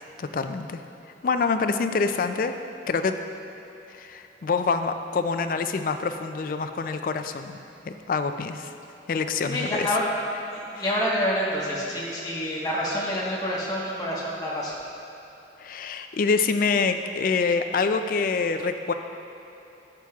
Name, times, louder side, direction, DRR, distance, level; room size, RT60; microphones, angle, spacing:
voice 1, 0.2-0.8 1.2-2.6 2.9-3.2 3.9-8.7 9.1-9.9 10.7-10.8 15.6-18.9, left 4 dB, 50° left, 8 dB, 0.3 m, -26 dB
voice 2, 9.4-10.0 10.5-14.8, equal, 20° left, -6 dB, 1.2 m, -27 dB
11.5 x 7.4 x 2.4 m, 2.9 s
head